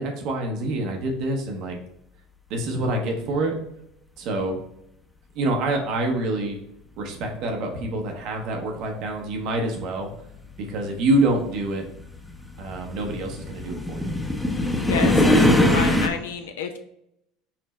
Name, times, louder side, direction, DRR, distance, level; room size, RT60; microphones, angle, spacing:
voice 1, 0.0-1.8 2.5-3.5 4.2-4.6 5.3-6.6 7.0-10.1 10.6-11.8 12.6-14.2, right 2 dB, 65° right, 2 dB, 0.8 m, -26 dB
sound 1, 8.8-8.9 10.0-16.1, left 1 dB, 10° left, 0.6 m, -22 dB
voice 2, 14.9-16.8, left 6 dB, 90° left, 5 dB, 0.4 m, -29 dB
5.8 x 2.0 x 4.1 m, 0.77 s
hypercardioid pair, 90°, 0 cm